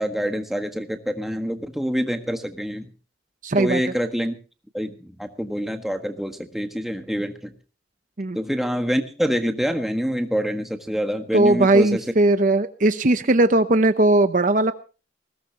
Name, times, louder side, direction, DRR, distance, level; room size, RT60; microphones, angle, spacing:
voice 1, 0.0-2.9 3.6-4.4 4.7-7.5 8.3-12.0, equal, ahead, 5 dB, 1.5 m, -26 dB
voice 2, 3.4-3.8 8.2-8.4 11.3-14.7, right 2 dB, 45° right, 10 dB, 0.8 m, -18 dB
20.5 x 17.0 x 2.9 m, 0.35 s
head